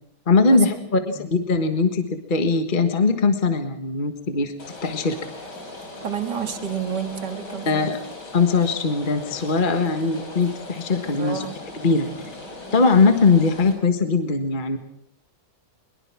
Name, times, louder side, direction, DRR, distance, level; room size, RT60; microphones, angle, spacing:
voice 1, 0.3-4.5 4.8-5.2 7.7-8.0 8.3-11.5 11.8-12.1 12.7-14.8, left 4 dB, 30° left, 7 dB, 1.6 m, -20 dB
voice 2, 0.9-1.3 6.0-7.9 11.2-11.6, right 7 dB, 75° right, 7 dB, 2.4 m, -30 dB
Rain, 4.6-13.7, left 2 dB, 85° left, 5.2 m, -39 dB
22.5 x 22.5 x 6.1 m, 0.72 s
omnidirectional pair, 1.8 m